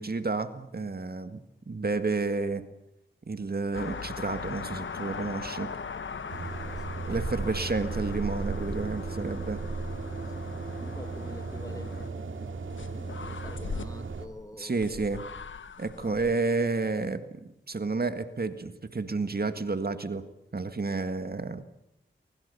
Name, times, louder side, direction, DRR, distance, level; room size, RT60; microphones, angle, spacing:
voice 1, 0.0-1.4 1.7-2.6 3.3-5.7 7.0-9.6 14.6-15.2 15.8-20.2 20.5-21.6, right 3 dB, 50° right, 10 dB, 1.9 m, -30 dB
sound 1, 3.7-12.1 12.7-13.9 14.8-16.3, left 5 dB, 80° left, 1.1 m, -40 dB
voice 2, 6.1-7.1 10.4-12.4 12.9-15.1 16.0-16.2, left 1 dB, 15° left, 9 dB, 1.9 m, -48 dB
sound 2, 6.3-14.3, right 4 dB, 85° right, 2.4 m, -36 dB
23.5 x 21.5 x 6.9 m, 0.85 s
cardioid pair, 50°, 20 cm